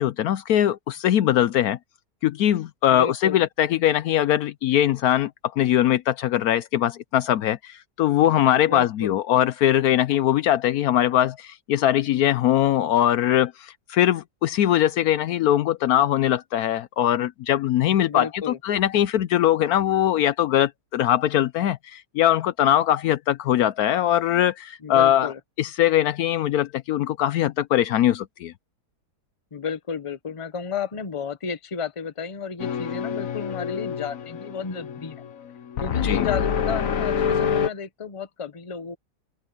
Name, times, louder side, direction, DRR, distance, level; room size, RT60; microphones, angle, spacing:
voice 1, 0.0-1.8 2.2-5.3 5.6-25.3 25.6-28.5 36.0-36.3, left 12 dB, 70° left, 1.0 m, -21 dB
voice 2, 2.9-3.4 8.6-9.2 18.0-18.6 24.8-25.4 29.5-35.2 35.8-39.0, left 6 dB, 25° left, 0.8 m, -32 dB
sound 1, 32.6-37.7, left 7 dB, 55° left, 1.4 m, -27 dB
open air
omnidirectional pair, 1.7 m